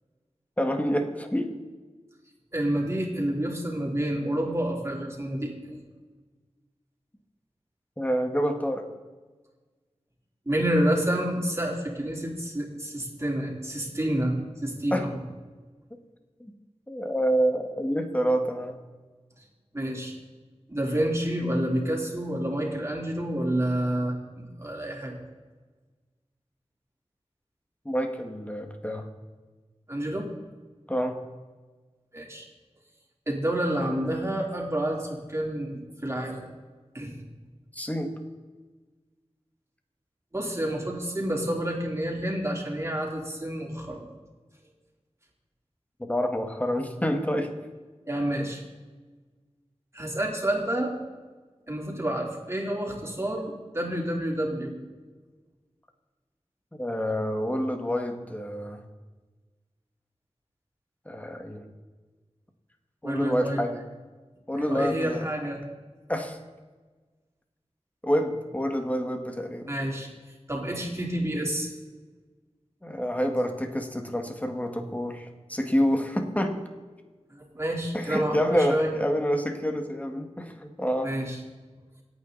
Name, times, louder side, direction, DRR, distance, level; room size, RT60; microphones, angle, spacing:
voice 1, 0.6-1.6 8.0-8.8 14.9-15.1 16.4-16.5 16.9-18.8 27.9-29.1 30.9-31.2 37.7-38.1 46.0-47.5 56.8-58.8 61.1-61.6 63.0-63.8 64.5-65.3 66.1-66.4 68.0-69.7 72.8-76.6 77.9-81.1, equal, 15° left, 5 dB, 2.0 m, -27 dB
voice 2, 2.5-5.8 10.5-15.2 19.7-20.1 20.7-25.1 29.9-30.3 32.1-32.5 33.3-36.5 36.9-37.1 40.3-44.1 48.1-48.6 49.9-50.9 51.7-54.7 63.0-63.6 64.5-65.6 69.7-70.1 70.5-71.7 77.3-78.9 81.0-81.4, right 1 dB, 25° right, -1 dB, 3.9 m, -29 dB
27.5 x 9.2 x 4.2 m, 1.3 s
wide cardioid pair, 75°, 11 cm